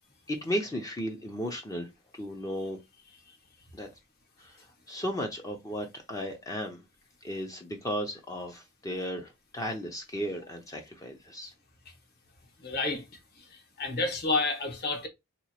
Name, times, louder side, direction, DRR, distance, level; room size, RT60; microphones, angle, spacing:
voice 1, 0.3-1.9 2.2-2.8 3.7-3.9 4.4-4.6 4.9-6.8 7.2-11.5, equal, 15° left, 0.5 m, -35 dB
voice 2, 12.6-13.0 13.4-13.5 13.8-15.1, left 3 dB, 50° left, 1.0 m, -29 dB
2.9 x 2.3 x 4.1 m
head